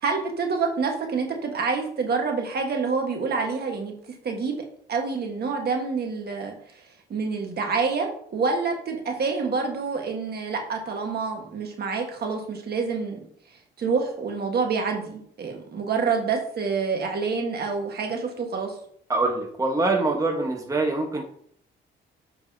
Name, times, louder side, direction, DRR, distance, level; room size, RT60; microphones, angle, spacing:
voice 1, 0.0-3.9 4.2-6.5 7.1-13.2 13.8-18.7, right 4 dB, 55° right, 2 dB, 1.5 m, -27 dB
voice 2, 19.1-21.2, right 2 dB, 15° right, 2 dB, 1.2 m, -24 dB
8.4 x 4.7 x 2.8 m, 0.63 s
cardioid pair, 90°, 20 cm